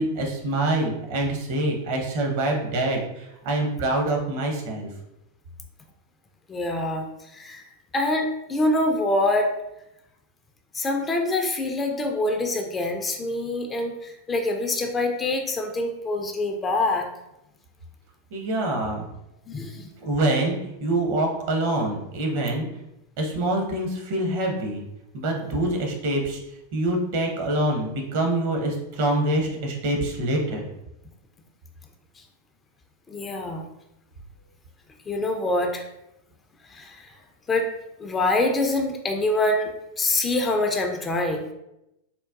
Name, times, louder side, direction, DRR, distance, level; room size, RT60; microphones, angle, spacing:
voice 1, 0.0-4.9 18.3-19.1 20.0-22.7 23.2-24.8 25.1-26.4 26.7-30.7, right 1 dB, 50° right, 1 dB, 0.7 m, -25 dB
voice 2, 6.5-7.6 7.9-9.5 10.7-17.1 19.5-19.9 33.1-33.6 35.1-35.8 36.7-37.1 37.5-37.7 38.0-39.7 40.0-41.5, left 2 dB, 20° left, 3 dB, 0.3 m, -25 dB
3.8 x 2.2 x 2.3 m, 0.87 s
figure-of-eight pair, 90°, 0 cm